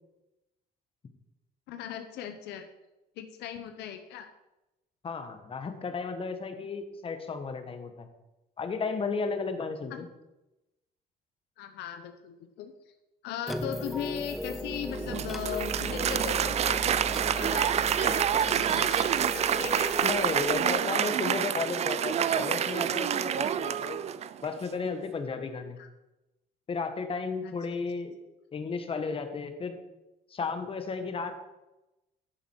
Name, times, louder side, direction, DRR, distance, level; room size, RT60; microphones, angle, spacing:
voice 1, 1.7-2.7 3.2-4.3 9.9-10.0 11.6-12.9 13.2-17.0 17.3-19.9 25.8-25.9 27.4-27.5, left 9 dB, 85° left, 8 dB, 0.8 m, -38 dB
voice 2, 5.0-8.1 8.6-10.1 20.0-24.0 24.4-25.8 26.7-28.1 28.5-29.8 30.3-31.3, left 4 dB, 35° left, 7 dB, 1.3 m, -33 dB
sound 1, 13.5-20.7, equal, ahead, 0.8 m, -37 dB
Applause, 14.9-24.5, right 9 dB, 40° right, 0.4 m, -28 dB
11.0 x 6.8 x 4.5 m, 0.98 s
cardioid pair, 110°, 17 cm